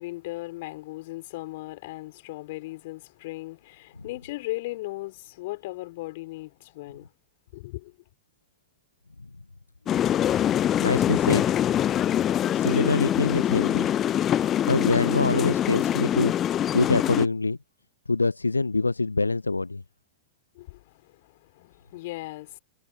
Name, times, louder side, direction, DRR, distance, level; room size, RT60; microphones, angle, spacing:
voice 1, 0.0-7.1 7.5-7.9 20.5-22.6, left 19 dB, 50° left, 2.9 m, -37 dB
sound 1, 9.9-17.3, left 10 dB, 30° left, 0.4 m, -24 dB
voice 2, 10.8-11.5 12.5-13.9 14.7-16.3 16.7-17.6 18.1-19.8, left 3 dB, 80° left, 0.6 m, -24 dB
figure-of-eight pair, 90°, 0 cm